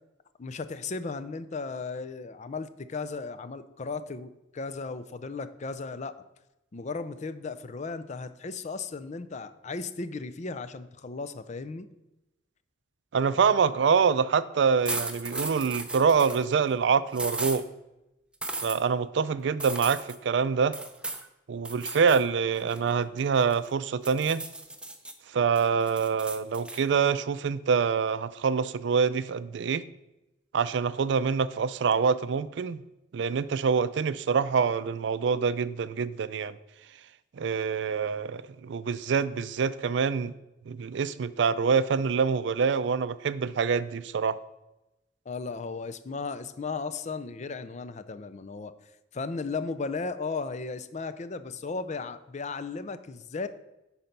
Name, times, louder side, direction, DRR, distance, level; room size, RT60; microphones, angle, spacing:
voice 1, 0.4-6.1 6.7-11.9 45.3-48.7 49.1-53.5, left 4 dB, 40° left, 12 dB, 0.5 m, -35 dB
voice 2, 13.1-17.7 18.6-20.8 21.5-24.4 25.3-29.8 30.5-32.8 33.1-36.6 37.3-40.3 40.7-44.4, right 6 dB, 65° right, 15 dB, 0.4 m, -25 dB
sound 1, 14.8-16.4 17.1-17.6 18.4-18.8 19.6-20.2 20.7-21.2 21.6-22.2 22.5-23.7 24.0-25.1 25.5-26.8, right 2 dB, 5° right, 0.6 m, -36 dB
10.0 x 4.3 x 5.3 m, 0.95 s
head